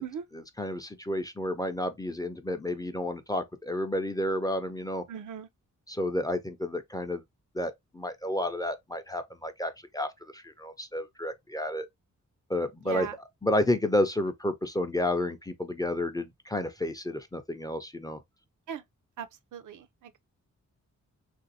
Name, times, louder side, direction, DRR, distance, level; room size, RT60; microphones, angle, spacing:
voice 1, 0.3-5.0 5.9-7.2 7.5-11.9 12.5-13.1 13.4-18.2, left 1 dB, 15° left, 0.3 m, -31 dB
voice 2, 5.1-5.5 12.8-13.2 18.7-18.8 19.2-20.2, right 8 dB, 85° right, 0.5 m, -39 dB
3.1 x 2.5 x 2.6 m
wide cardioid pair, 135°, 30 cm